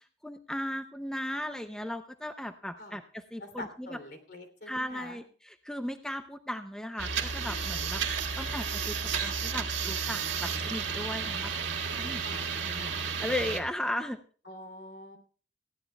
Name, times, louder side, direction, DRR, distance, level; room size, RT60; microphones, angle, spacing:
voice 1, 0.0-4.0 4.7-9.0 9.2-14.2, left 1 dB, 5° left, 8 dB, 0.5 m, -37 dB
voice 2, 3.4-5.2 12.2-12.4 14.4-15.2, left 1 dB, 60° left, 7 dB, 3.1 m, -45 dB
sound 1, 7.0-13.6, right 6 dB, 75° right, 1.9 m, -32 dB
20.0 x 15.5 x 2.3 m, 0.41 s
head